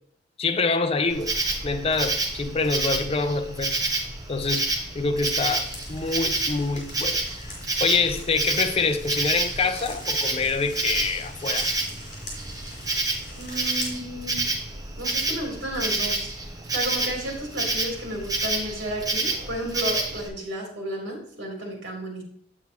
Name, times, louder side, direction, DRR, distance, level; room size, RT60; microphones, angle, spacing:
voice 1, 0.4-1.4 1.6-3.7 4.3-4.7 4.9-7.5 7.8-11.7, left 4 dB, 30° left, 0.5 m, -26 dB
Insect, 1.1-20.3, right 2 dB, 20° right, 1.1 m, -29 dB
sound 1, 5.3-14.0, left 2 dB, 55° left, 3.6 m, -43 dB
voice 2, 13.3-14.4 15.0-16.3 16.7-22.2, equal, 65° right, 3.2 m, -32 dB
8.6 x 8.1 x 2.9 m
head